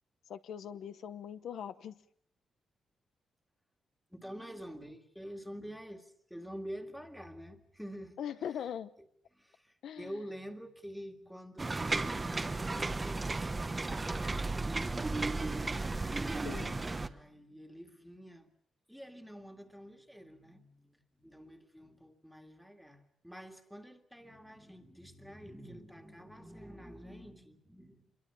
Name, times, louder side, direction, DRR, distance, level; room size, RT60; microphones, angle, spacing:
voice 1, 0.3-2.0 8.2-8.9 9.8-10.2 16.4-16.9, left 9 dB, 70° left, 11 dB, 1.0 m, -41 dB
voice 2, 4.1-8.2 9.3-15.7 16.9-18.5 18.9-28.1, equal, ahead, 4 dB, 2.0 m, -48 dB
sound 1, 11.6-17.1, right 3 dB, 15° right, 1.0 m, -34 dB
26.5 x 23.0 x 7.0 m, 0.64 s
wide cardioid pair, 175°, 0 cm